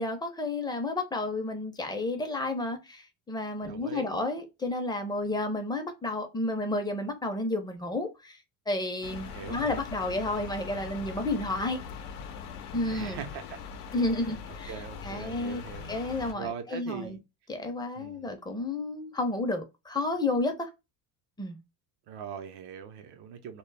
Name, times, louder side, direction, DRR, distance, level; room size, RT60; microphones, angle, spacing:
voice 1, 0.0-8.4 8.7-11.8 12.7-13.2 13.9-14.7 15.0-15.6 15.9-17.2 17.5-20.7 21.4-21.6, left 2 dB, 10° left, 0.5 m, -31 dB
voice 2, 3.6-4.2 9.2-9.8 12.8-13.6 13.8-13.9 14.2-14.3 14.7-15.9 16.3-17.2 18.0-18.3 22.1-23.6, right 7 dB, 60° right, 0.7 m, -41 dB
sound 1, 9.0-16.3, left 6 dB, 85° left, 0.6 m, -41 dB
2.2 x 2.0 x 3.2 m
supercardioid pair, 95°, 44 cm